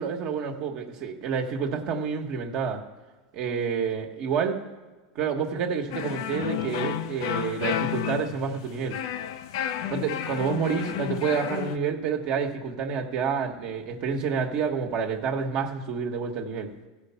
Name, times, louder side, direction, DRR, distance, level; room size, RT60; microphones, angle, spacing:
voice 1, 0.0-2.8 3.3-4.6 5.1-9.0 9.9-16.7, right 6 dB, 55° right, 1 dB, 1.1 m, -28 dB
sound 1, 5.9-11.8, left 9 dB, 70° left, 0.5 m, -31 dB
15.0 x 5.1 x 5.5 m, 1.3 s
supercardioid pair, 115°, 2 cm